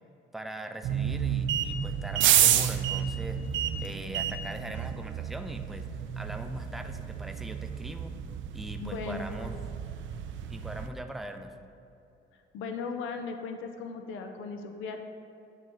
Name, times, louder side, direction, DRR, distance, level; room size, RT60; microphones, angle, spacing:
voice 1, 0.3-3.4 3.8-8.1 8.5-9.6 10.5-11.5, right 1 dB, ahead, 6 dB, 0.3 m, -41 dB
sound 1, 0.8-10.9, right 9 dB, 75° right, 0.4 m, -30 dB
voice 2, 8.8-9.5 12.5-15.0, left 4 dB, 90° left, 5 dB, 0.5 m, -37 dB
8.8 x 3.0 x 3.8 m, 2.8 s
cardioid pair, 90°, 20 cm